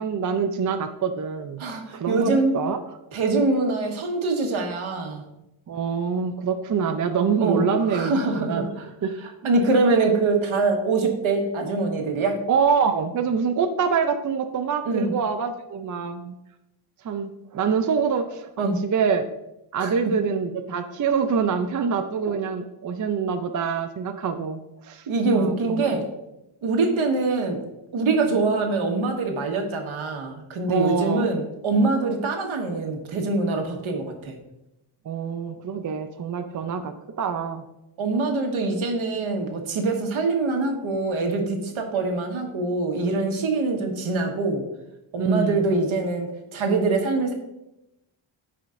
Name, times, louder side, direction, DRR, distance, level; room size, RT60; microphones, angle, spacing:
voice 1, 0.0-1.6 1.9-2.8 5.7-8.7 9.0-9.1 12.5-16.4 17.0-19.3 19.7-25.1 25.3-25.8 30.7-31.3 35.1-37.6 45.2-45.7, right 6 dB, 40° right, 6 dB, 0.4 m, -25 dB
voice 2, 1.6-2.6 3.1-5.2 7.4-8.8 9.4-12.4 14.8-15.1 18.6-18.8 19.8-19.9 25.1-26.0 26.6-27.6 27.9-34.4 38.0-44.6 45.1-47.3, right 3 dB, 70° right, 3 dB, 1.5 m, -24 dB
15.0 x 5.0 x 2.5 m, 0.90 s
wide cardioid pair, 165°, 50 cm